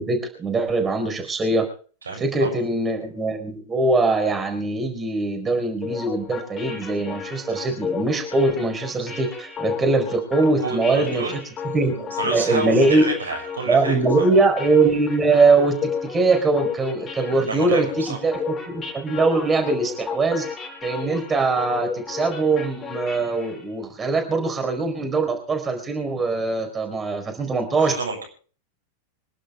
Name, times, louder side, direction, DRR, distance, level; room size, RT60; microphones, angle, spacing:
voice 1, 0.0-1.7 2.2-11.2 11.7-13.0 13.7-20.5 20.8-27.9, right 3 dB, 20° right, 4 dB, 4.6 m, -22 dB
voice 2, 2.1-2.5 10.6-11.4 11.6-14.2 17.5-18.2 27.8-28.2, right 3 dB, 75° right, 3 dB, 6.8 m, -29 dB
sound 1, 5.8-23.7, left 6 dB, 25° left, 5.6 m, -33 dB
26.5 x 11.5 x 3.4 m, 0.40 s
figure-of-eight pair, 90°, 0 cm